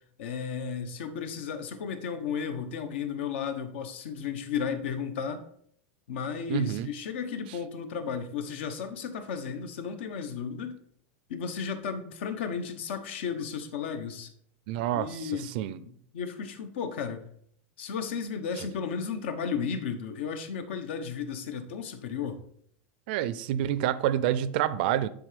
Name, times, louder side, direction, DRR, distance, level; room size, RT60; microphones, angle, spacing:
voice 1, 0.2-5.4 6.1-10.8 11.3-14.3 14.9-17.2 17.8-22.4, left 6 dB, 65° left, 1.1 m, -34 dB
voice 2, 6.5-6.9 14.7-15.8 23.1-25.1, right 11 dB, 50° right, 0.4 m, -28 dB
9.6 x 3.9 x 5.1 m
supercardioid pair, 170°, 7 cm